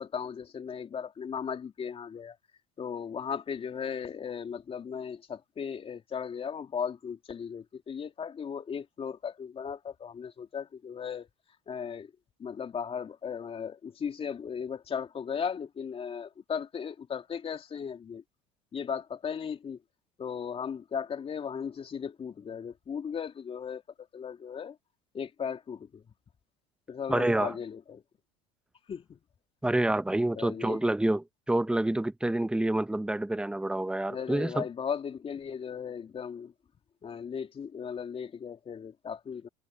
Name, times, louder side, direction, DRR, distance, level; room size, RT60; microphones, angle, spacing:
voice 1, 0.0-2.4 2.8-11.3 11.7-12.1 12.4-18.2 18.7-19.8 20.2-23.8 24.1-24.8 25.1-26.0 26.9-28.0 28.9-29.2 30.3-30.8 34.1-36.5 37.0-39.5, left 7 dB, 30° left, 3.1 m, -36 dB
voice 2, 27.1-27.5 29.6-34.6, right 1 dB, 5° right, 1.0 m, -28 dB
hypercardioid pair, 85°, 18 cm